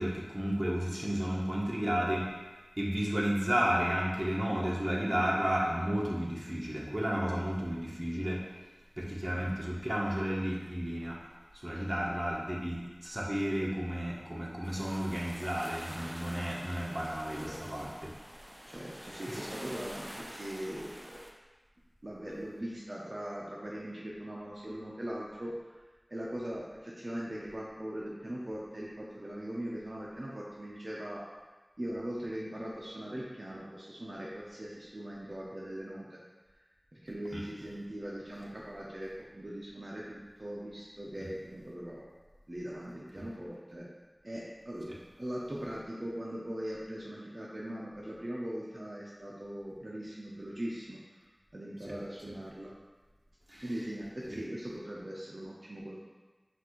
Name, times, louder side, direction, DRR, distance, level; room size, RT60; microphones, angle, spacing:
voice 1, 0.0-2.3 2.8-8.4 9.0-11.2 11.6-18.1 19.3-19.5 37.3-37.4 43.2-43.3 44.9-45.0 51.9-52.0 53.5-53.6 54.3-54.4, equal, 30° right, -5 dB, 0.9 m, -32 dB
sound 1, 14.6-21.3, equal, 10° right, 0.5 m, -46 dB
voice 2, 17.4-17.9 18.7-21.1 22.0-25.5 26.1-31.2 31.8-36.2 36.9-42.1 42.5-43.9 44.2-44.9 45.2-51.0 51.5-52.7 53.6-56.0, right 1 dB, 60° right, -5 dB, 0.6 m, -40 dB
5.9 x 2.5 x 3.0 m, 1.3 s
wide cardioid pair, 45°, 0 cm